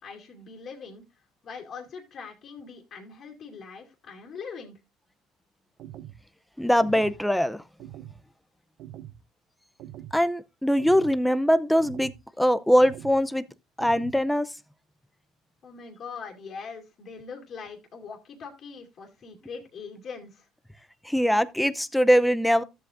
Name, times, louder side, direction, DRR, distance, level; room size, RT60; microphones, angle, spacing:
voice 1, 0.0-1.0 1.4-4.8 15.6-20.5, left 5 dB, 50° left, 2.5 m, -42 dB
sound 1, 5.8-6.2 6.8-7.2 7.8-8.2 8.8-9.2 9.8-10.2 10.8-11.2 11.8-12.2 12.8-13.2 13.8-14.2, right 12 dB, 70° right, 0.6 m, -43 dB
voice 2, 6.6-7.6 10.1-12.1 12.4-13.4 13.8-14.5 21.0-22.6, equal, 5° left, 0.7 m, -22 dB
13.0 x 7.7 x 2.6 m
supercardioid pair, 95°, 0 cm